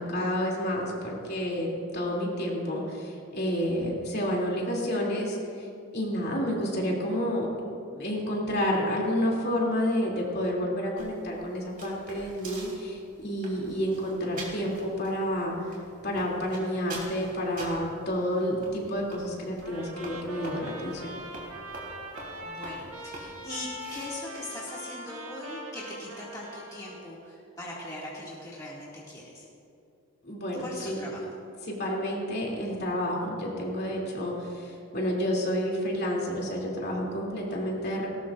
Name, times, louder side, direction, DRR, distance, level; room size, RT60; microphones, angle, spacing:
voice 1, 0.0-5.7 5.9-7.5 7.9-15.7 16.0-21.1 30.2-31.0 31.6-38.1, equal, 45° left, -3 dB, 2.7 m, -30 dB
sound 1, 11.0-24.1, right 2 dB, 40° right, 3.3 m, -46 dB
Trumpet, 19.6-27.1, equal, 80° right, 1.7 m, -42 dB
voice 2, 22.4-29.5 30.6-31.2, left 1 dB, 15° left, -6 dB, 2.1 m, -40 dB
19.0 x 18.0 x 2.5 m, 2.5 s
head